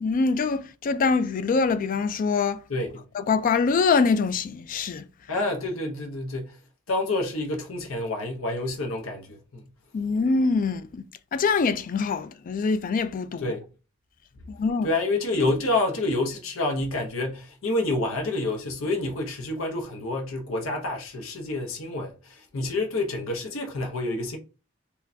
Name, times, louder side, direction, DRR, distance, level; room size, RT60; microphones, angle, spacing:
voice 1, 0.0-2.6 3.1-5.0 9.9-11.0 11.3-13.5 14.6-14.9, left 4 dB, 40° left, 0.3 m, -24 dB
voice 2, 2.7-3.0 5.3-6.6 6.9-9.7 13.4-13.6 14.8-24.4, left 2 dB, 70° left, 0.8 m, -28 dB
4.4 x 2.2 x 2.7 m
head